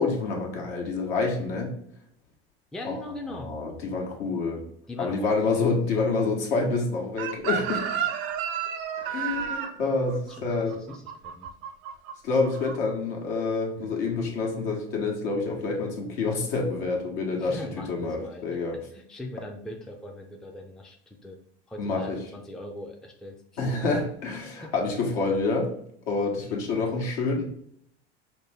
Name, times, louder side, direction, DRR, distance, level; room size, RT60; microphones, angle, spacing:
voice 1, 0.0-1.7 2.8-3.0 3.4-4.6 5.0-7.8 9.0-10.8 12.2-18.8 21.8-22.2 23.6-25.7 26.1-27.4, left 3 dB, 70° left, 0 dB, 1.3 m, -27 dB
voice 2, 2.7-3.5 4.9-5.7 10.3-10.5 10.7-11.5 13.8-14.0 17.3-18.5 18.9-21.4 21.7-23.4 24.4-24.7 26.4-26.9, left 1 dB, ahead, 2 dB, 0.5 m, -41 dB
Chicken rooster, 7.2-12.1 12.4-12.8, right 8 dB, 45° right, 0.6 m, -31 dB
5.1 x 2.1 x 3.4 m, 0.68 s
hypercardioid pair, 90°, 31 cm